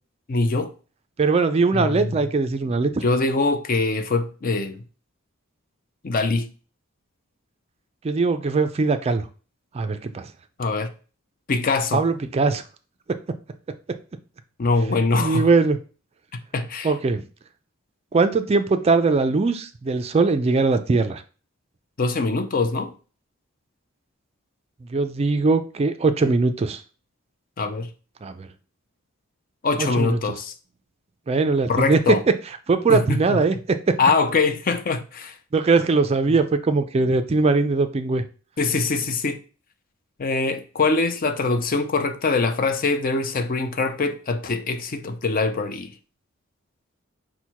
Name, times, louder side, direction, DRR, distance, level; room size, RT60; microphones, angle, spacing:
voice 1, 0.3-0.7 1.7-2.2 3.0-4.8 6.0-6.5 10.6-10.9 11.5-12.0 14.6-15.5 16.5-16.9 22.0-22.9 27.6-27.9 29.6-30.5 31.7-32.2 32.9-33.4 34.0-35.3 38.6-39.4 40.2-45.9, left 3 dB, 40° left, 0.5 m, -23 dB
voice 2, 1.2-2.9 8.0-9.3 9.7-10.3 11.9-12.6 13.1-13.2 15.2-15.8 16.8-17.2 18.1-21.2 24.9-26.8 28.2-28.5 29.8-30.2 31.3-32.2 32.7-33.9 35.5-38.2, right 4 dB, 30° right, 0.3 m, -21 dB
5.5 x 2.2 x 4.5 m
head